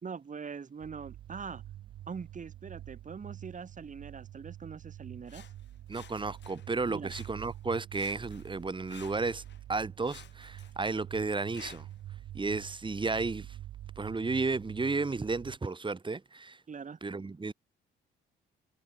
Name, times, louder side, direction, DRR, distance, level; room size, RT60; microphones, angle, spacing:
voice 1, 0.0-1.6 2.1-5.5 6.9-7.1 16.7-17.0, right 6 dB, 40° right, 3.9 m, -42 dB
sound 1, 0.8-15.6, right 13 dB, 80° right, 4.7 m, -47 dB
Sawing, 5.3-6.7 7.0-7.7 7.9-9.6 10.0-12.0 12.7-12.8, left 9 dB, 60° left, 6.7 m, -55 dB
voice 2, 5.9-9.4 9.7-11.9 12.3-13.5 14.0-16.6 17.0-17.5, right 3 dB, 25° right, 3.9 m, -33 dB
cardioid pair, 90°, 20 cm